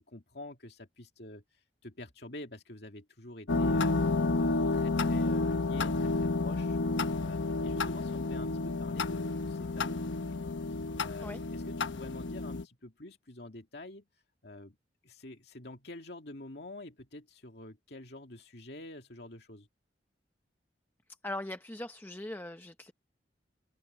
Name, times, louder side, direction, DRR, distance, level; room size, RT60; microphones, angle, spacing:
voice 1, 0.0-1.4 1.8-4.0 4.4-6.8 7.2-14.0 14.4-14.8 15.0-19.7, left 1 dB, 60° left, 2.5 m, -47 dB
sound 1, 3.5-12.6, left 3 dB, 85° left, 1.0 m, -30 dB
voice 2, 21.2-22.9, left 1 dB, 10° left, 0.7 m, -40 dB
head